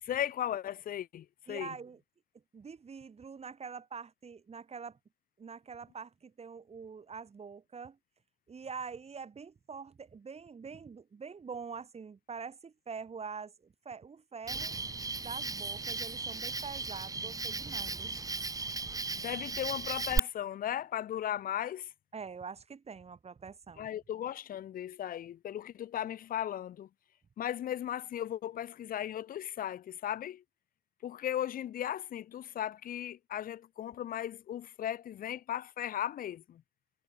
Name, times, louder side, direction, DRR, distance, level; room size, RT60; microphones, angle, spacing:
voice 1, 0.0-1.8 19.1-21.9 23.8-26.9 27.4-30.4 31.0-36.6, left 11 dB, 60° left, 2.2 m, -36 dB
voice 2, 1.5-2.0 2.5-5.0 5.4-8.0 8.5-14.7 15.2-18.1 22.1-23.9, right 5 dB, 40° right, 2.1 m, -45 dB
Cricket, 14.5-20.2, right 3 dB, 20° right, 0.9 m, -36 dB
figure-of-eight pair, 40°, 16 cm